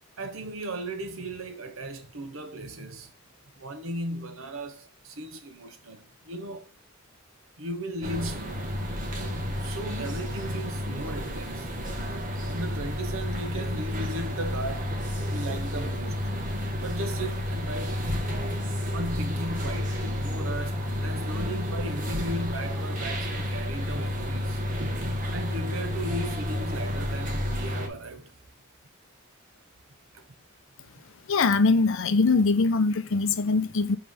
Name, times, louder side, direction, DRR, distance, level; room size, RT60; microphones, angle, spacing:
voice 1, 0.2-3.1 3.6-6.7 7.6-8.8 9.1-11.8 12.4-14.9 15.3-16.4 16.8-18.0 18.9-24.7 25.3-28.3 30.1-30.2, right 1 dB, 65° right, 1.0 m, -36 dB
sound 1, 8.0-27.9, left 1 dB, 40° right, 1.1 m, -31 dB
voice 2, 31.3-34.0, left 4 dB, 65° left, 0.6 m, -22 dB
5.2 x 3.3 x 5.5 m
head